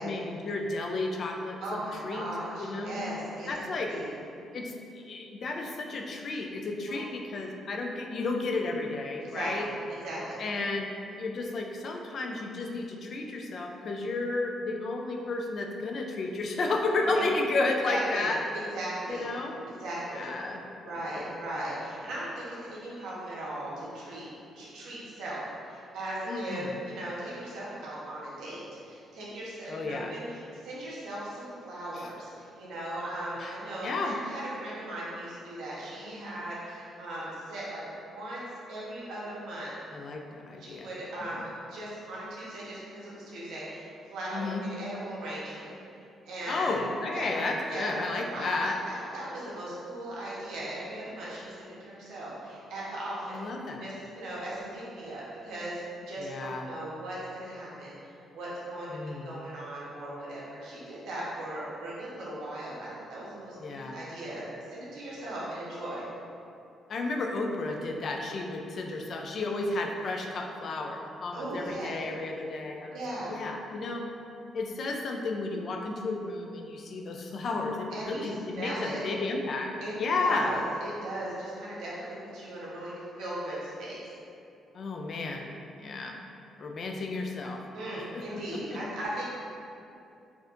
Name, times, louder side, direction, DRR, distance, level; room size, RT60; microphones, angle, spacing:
voice 1, 0.0-2.3 2.6-3.0 3.5-3.9 4.5-9.7 10.4-10.9 11.2-18.4 19.1-19.6 20.1-20.6 20.9-21.3 26.3-26.7 29.7-30.2 31.9-32.1 33.4-33.6 33.8-34.2 39.9-40.9 41.2-41.4 44.3-44.7 46.5-48.8 53.3-53.9 56.2-56.7 58.9-59.3 63.6-64.0 66.9-73.0 73.3-74.1 74.5-79.7 80.0-80.6 84.7-85.5 85.8-86.2 86.6-87.6 88.1-88.8, left 3 dB, 55° left, 2 dB, 0.4 m, -32 dB
voice 2, 1.6-4.1 6.8-7.0 9.2-9.7 10.0-10.4 17.0-17.2 17.9-19.3 19.7-20.3 20.8-24.2 24.5-38.4 38.7-39.7 40.6-45.7 46.2-46.8 47.1-47.4 47.7-53.4 53.8-66.0 71.3-71.9 72.9-73.3 77.9-79.0 79.8-84.0 87.7-89.2, right 1 dB, 85° right, -7 dB, 1.0 m, -38 dB
4.2 x 2.8 x 2.5 m, 2.6 s
cardioid pair, 90°, 0 cm